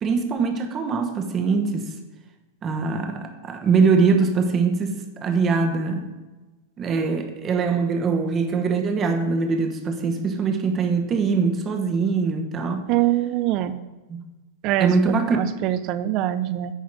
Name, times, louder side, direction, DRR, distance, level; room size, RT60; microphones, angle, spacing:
voice 1, 0.0-1.9 2.6-6.1 6.8-12.9 14.1-14.2 14.8-15.6, right 4 dB, 25° right, 5 dB, 1.1 m, -22 dB
voice 2, 12.9-13.8 14.6-14.9 15.3-16.8, right 14 dB, 45° right, 14 dB, 0.4 m, -23 dB
10.0 x 4.1 x 4.8 m, 1.2 s
hypercardioid pair, 125°, 0 cm